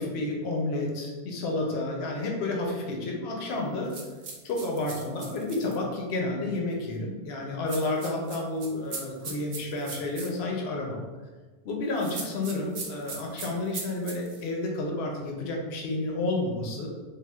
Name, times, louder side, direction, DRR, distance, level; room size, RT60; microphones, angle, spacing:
voice 1, 0.0-4.0 4.4-11.0 11.6-16.9, left 2 dB, 85° left, 0 dB, 0.8 m, -30 dB
sound 1, 3.9-5.8 7.7-10.3 12.0-14.4, right 4 dB, 60° right, 0.6 m, -39 dB
3.5 x 2.2 x 2.2 m, 1.3 s
omnidirectional pair, 1.0 m